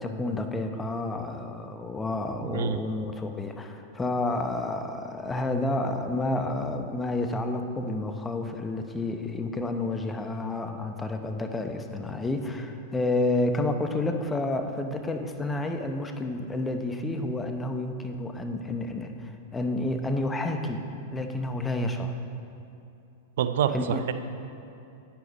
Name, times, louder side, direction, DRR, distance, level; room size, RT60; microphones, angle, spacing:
voice 1, 0.0-20.8 21.1-22.2 23.7-24.0, left 2 dB, 15° left, 6 dB, 0.8 m, -30 dB
voice 2, 2.4-2.8 9.1-9.2 23.4-24.1, right 9 dB, 70° right, 11 dB, 0.5 m, -27 dB
10.0 x 9.6 x 4.1 m, 2.7 s
hypercardioid pair, 115°, 0 cm